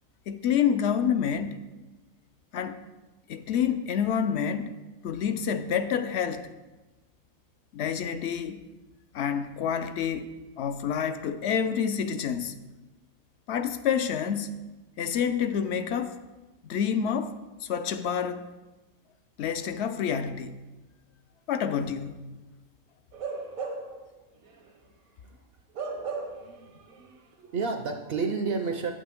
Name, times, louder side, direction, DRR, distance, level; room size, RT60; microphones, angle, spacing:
voice 1, 0.3-1.6 2.5-2.8 3.3-4.7 5.0-6.5 7.7-8.6 9.1-12.5 13.5-14.6 15.0-16.2 16.6-18.5 19.4-20.6 21.5-22.2, left 7 dB, 65° left, 0.7 m, -28 dB
Bark / Livestock farm animals working animals, 23.1-24.0 24.4-24.6 25.7-26.6 26.9-27.0, right 4 dB, 85° right, 1.6 m, -35 dB
voice 2, 26.4-28.9, right 4 dB, 60° right, 0.7 m, -32 dB
8.9 x 8.5 x 3.5 m
omnidirectional pair, 1.4 m